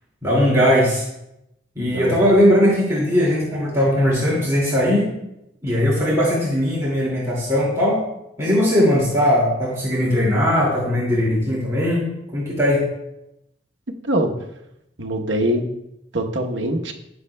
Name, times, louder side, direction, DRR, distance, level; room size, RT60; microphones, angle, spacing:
voice 1, 0.2-1.1 1.8-5.1 5.6-8.0 8.4-12.0 12.3-12.8, equal, 15° right, -6 dB, 2.3 m, -19 dB
voice 2, 1.9-2.3 14.0-14.3 15.0-15.7 16.1-16.9, right 1 dB, 85° right, 3 dB, 1.0 m, -23 dB
19.0 x 6.4 x 2.2 m, 0.86 s
head